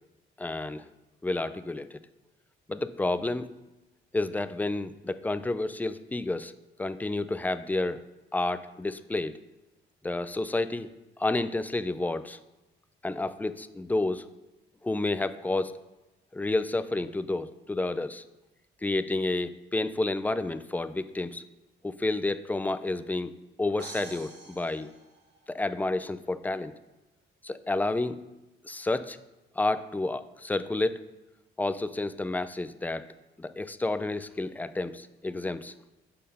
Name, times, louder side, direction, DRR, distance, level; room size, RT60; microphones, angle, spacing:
voice 1, 0.4-0.9 1.2-2.0 2.7-3.5 4.1-6.5 6.8-8.0 8.3-9.4 10.0-10.9 11.2-12.4 13.0-14.3 14.8-15.7 16.3-18.2 18.8-21.4 21.8-23.3 23.6-24.9 25.5-26.7 27.4-28.2 28.6-29.2 29.6-31.0 31.6-33.1 33.4-35.7, left 2 dB, 10° left, 13 dB, 0.4 m, -30 dB
sound 1, 23.8-25.8, right 4 dB, 60° right, 1.3 m, -47 dB
6.4 x 5.7 x 5.3 m, 1.0 s
cardioid pair, 90°, 20 cm